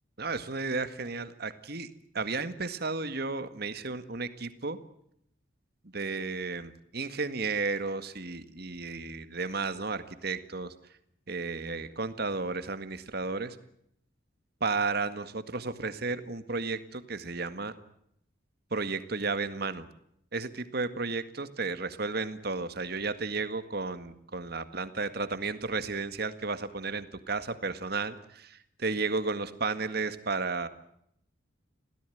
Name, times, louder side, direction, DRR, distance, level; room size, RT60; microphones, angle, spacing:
voice 1, 0.2-4.8 5.9-10.7 11.3-13.6 14.6-17.7 18.7-19.9 20.3-30.7, right 4 dB, 55° right, 11 dB, 1.9 m, -33 dB
27.0 x 17.5 x 9.3 m, 0.73 s
head